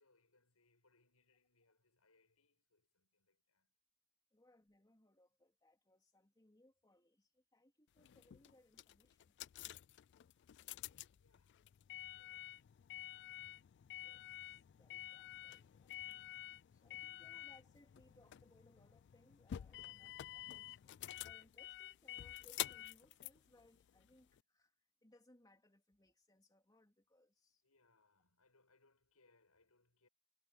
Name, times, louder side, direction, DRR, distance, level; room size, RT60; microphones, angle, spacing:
voice 1, 0.0-3.7 4.4-4.6 11.1-11.8 12.2-12.8 16.8-17.3 27.6-30.1, left 3 dB, 85° left, 7.9 m, -76 dB
voice 2, 4.3-9.3 14.0-16.2 16.7-24.7 25.0-27.6, left 1 dB, 15° left, 2.9 m, -70 dB
sound 1, 8.0-24.4, left 13 dB, 50° left, 0.3 m, -50 dB
head